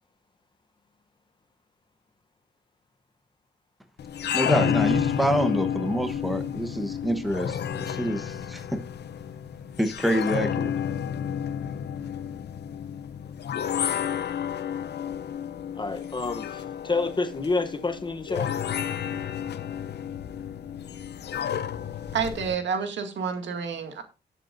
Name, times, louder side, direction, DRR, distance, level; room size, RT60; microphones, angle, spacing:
sound 1, 4.0-22.6, left 8 dB, 65° left, 0.6 m, -31 dB
voice 1, 4.3-8.6 9.8-10.7, equal, ahead, 1.0 m, -27 dB
voice 2, 15.8-18.5, left 3 dB, 25° left, 0.8 m, -28 dB
voice 3, 22.1-24.0, right 6 dB, 80° right, 2.1 m, -29 dB
18.0 x 7.8 x 2.6 m
wide cardioid pair, 140°, 19 cm